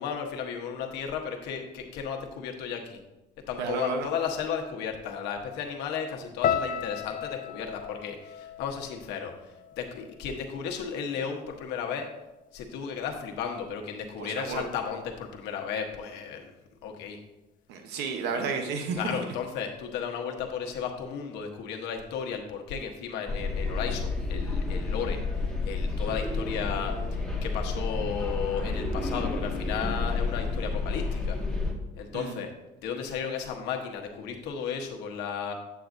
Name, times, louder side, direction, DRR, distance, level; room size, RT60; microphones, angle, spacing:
voice 1, 0.0-3.0 3.5-12.1 12.5-16.5 16.8-17.2 18.9-27.0 27.4-31.4 32.0-32.5 32.8-35.5, left 7 dB, 90° left, 3 dB, 1.1 m, -34 dB
voice 2, 3.6-4.1 14.2-14.7 17.7-19.2 32.1-32.4, right 4 dB, 85° right, 5 dB, 0.9 m, -31 dB
sound 1, 6.4-10.6 10.9-11.7 12.3-12.5, left 8 dB, 55° left, 0.4 m, -35 dB
sound 2, 23.3-31.7, left 3 dB, 5° left, 1.7 m, -30 dB
8.3 x 8.2 x 2.6 m, 1.0 s
cardioid pair, 110°, 17 cm